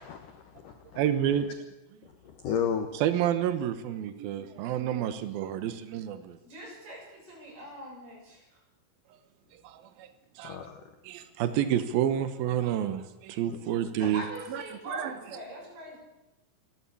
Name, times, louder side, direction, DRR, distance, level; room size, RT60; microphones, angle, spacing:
voice 1, 0.0-1.0 2.0-2.9 10.4-10.8 13.4-13.6 14.0-14.1, left 8 dB, 85° left, 7 dB, 1.8 m, -34 dB
voice 2, 1.0-1.5 3.0-6.4 9.6-10.1 10.4-10.6 11.0-14.2 14.5-15.1, right 10 dB, 90° right, 11 dB, 2.0 m, -29 dB
voice 3, 6.4-8.6 14.1-16.0, right 1 dB, 50° right, -1 dB, 8.8 m, -43 dB
27.5 x 12.0 x 8.5 m, 0.99 s
omnidirectional pair, 5.9 m